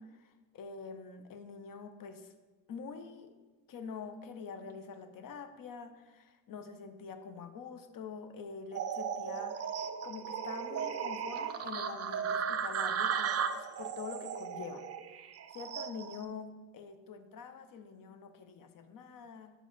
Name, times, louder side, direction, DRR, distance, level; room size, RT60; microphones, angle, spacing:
voice 1, 0.0-2.3 2.7-3.3 3.7-19.5, left 5 dB, 45° left, 9 dB, 0.9 m, -46 dB
sound 1, 8.7-16.2, right 7 dB, 35° right, 0.5 m, -36 dB
6.2 x 4.9 x 3.9 m, 1.3 s
hypercardioid pair, 55°, 46 cm